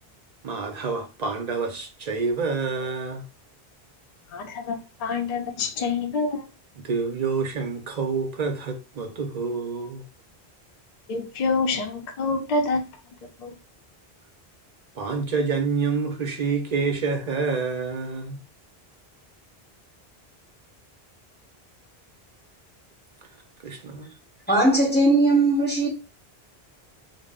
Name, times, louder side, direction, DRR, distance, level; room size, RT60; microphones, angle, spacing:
voice 1, 0.4-3.2 6.8-10.0 15.0-18.4 23.6-24.1, right 4 dB, 55° right, 0.5 m, -27 dB
voice 2, 4.3-6.4 11.1-12.8 13.4-13.5, left 3 dB, 55° left, 0.5 m, -26 dB
voice 3, 24.5-25.9, right 2 dB, 10° left, 0.7 m, -19 dB
2.0 x 2.0 x 3.4 m
omnidirectional pair, 1.1 m